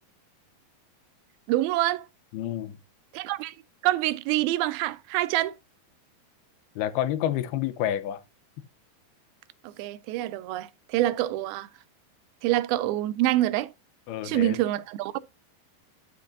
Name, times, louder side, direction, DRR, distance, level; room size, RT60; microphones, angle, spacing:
voice 1, 1.5-2.1 3.1-3.5 3.8-5.5 9.8-11.7 12.4-13.7 14.2-15.2, right 15 dB, 85° right, 2.4 m, -26 dB
voice 2, 2.3-2.8 6.8-8.2 14.1-14.6, left 12 dB, 85° left, 2.8 m, -29 dB
11.5 x 5.9 x 2.7 m
omnidirectional pair, 4.4 m